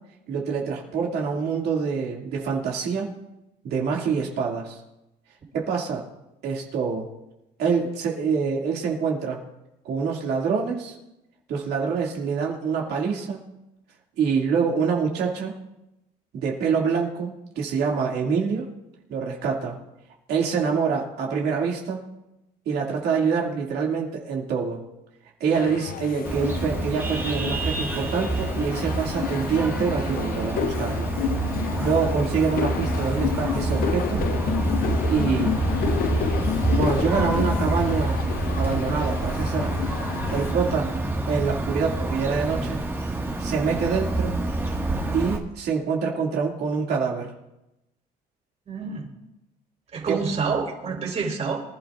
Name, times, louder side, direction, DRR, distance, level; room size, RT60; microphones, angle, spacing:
voice 1, 0.3-3.1 3.6-4.8 5.5-6.0 6.4-7.1 7.6-9.4 9.8-10.9 11.5-13.4 14.2-15.5 16.3-18.7 19.1-19.8 20.3-22.0 22.7-24.8 25.4-31.1 31.8-34.2 35.1-35.6 36.8-38.2 38.6-39.7 40.3-40.9 41.3-42.8 43.4-44.3 45.1-47.3 50.1-50.2, right 5 dB, 70° right, -2 dB, 2.5 m, -25 dB
sound 1, 25.5-40.5, left 9 dB, 60° left, 0.6 m, -30 dB
Vehicle horn car horn honking, 26.3-45.4, right 2 dB, 15° right, 1.8 m, -27 dB
voice 2, 48.7-49.1 49.9-51.6, right 5 dB, 40° right, 0 dB, 4.3 m, -27 dB
25.0 x 12.0 x 2.5 m, 0.93 s
cardioid pair, 110°, 17 cm